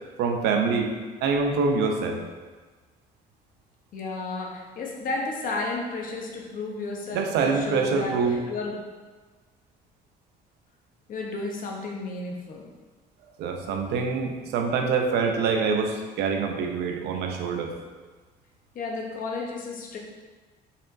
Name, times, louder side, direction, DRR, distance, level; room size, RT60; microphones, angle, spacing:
voice 1, 0.2-0.9 1.2-2.2 7.1-8.4 13.4-17.7, right 5 dB, 80° right, 3 dB, 0.6 m, -25 dB
voice 2, 3.9-8.8 11.1-12.7 18.7-20.0, left 3 dB, 55° left, -1 dB, 0.8 m, -33 dB
4.2 x 3.8 x 2.6 m, 1.3 s
cardioid pair, 110°, 17 cm